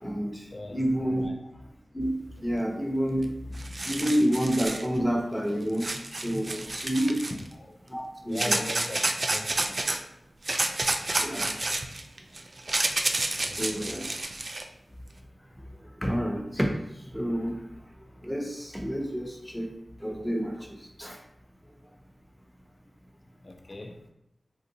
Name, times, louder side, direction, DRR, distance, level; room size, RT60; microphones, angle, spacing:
voice 1, 0.0-0.3 0.7-1.3 1.9-2.1 2.4-3.3 3.9-5.9 6.2-7.2 7.9-8.6 11.2-11.6 13.6-14.0 16.0-16.7 17.1-17.6 18.2-19.7 20.0-20.5 21.0-21.2, equal, 5° left, 1 dB, 0.7 m, -28 dB
voice 2, 1.1-1.5 7.3-7.8 8.2-9.9 13.4-14.1 23.4-24.0, left 2 dB, 55° left, 3 dB, 0.4 m, -40 dB
sound 1, 3.2-3.3 3.5-4.8 5.8-7.5 8.3-10.0 10.4-14.6, right 2 dB, 55° right, 0.3 m, -29 dB
3.6 x 2.5 x 2.7 m, 0.81 s
cardioid pair, 40°, 0 cm